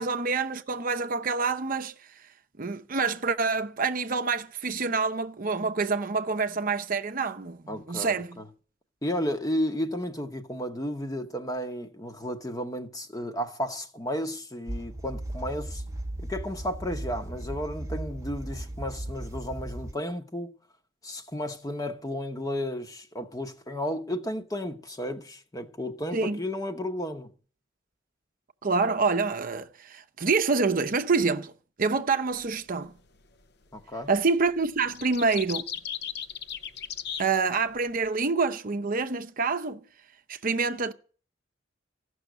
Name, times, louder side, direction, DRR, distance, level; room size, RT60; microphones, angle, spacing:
voice 1, 0.0-2.3 2.6-8.4 26.1-26.4 28.6-31.5 31.8-32.9 34.1-35.7 37.2-39.8 40.3-40.9, right 4 dB, 45° right, 0.7 m, -27 dB
voice 2, 7.7-8.5 9.0-15.8 16.2-20.5 21.0-27.3 33.7-34.1, equal, 20° left, 0.9 m, -33 dB
sound 1, 14.7-19.9, right 1 dB, 15° right, 0.8 m, -36 dB
sound 2, 32.4-32.6 33.8-34.1 34.5-38.1, left 9 dB, 60° left, 0.7 m, -37 dB
15.5 x 6.3 x 9.1 m
head